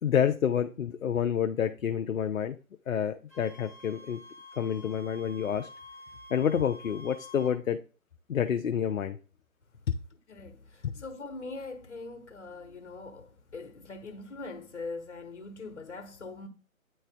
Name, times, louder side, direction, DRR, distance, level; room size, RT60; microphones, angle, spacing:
voice 1, 0.0-2.6 2.9-4.2 4.6-5.7 6.3-7.8 8.3-9.2 9.9-10.0 10.8-10.9, left 8 dB, 70° left, 0.6 m, -28 dB
Wind instrument woodwind instrument, 3.3-7.6, left 1 dB, 10° left, 0.8 m, -49 dB
voice 2, 10.3-16.5, left 3 dB, 55° left, 1.2 m, -42 dB
9.3 x 3.2 x 3.4 m
figure-of-eight pair, 145°, 42 cm